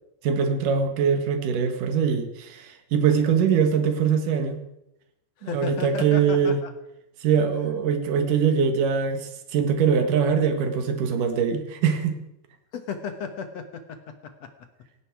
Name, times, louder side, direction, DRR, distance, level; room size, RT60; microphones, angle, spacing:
voice 1, 0.2-4.6 5.4-6.6 7.2-12.2, right 6 dB, 60° right, 6 dB, 3.1 m, -23 dB
voice 2, 5.4-6.7 12.7-14.5, left 5 dB, 60° left, 8 dB, 1.9 m, -34 dB
18.0 x 16.5 x 4.8 m, 0.85 s
omnidirectional pair, 4.4 m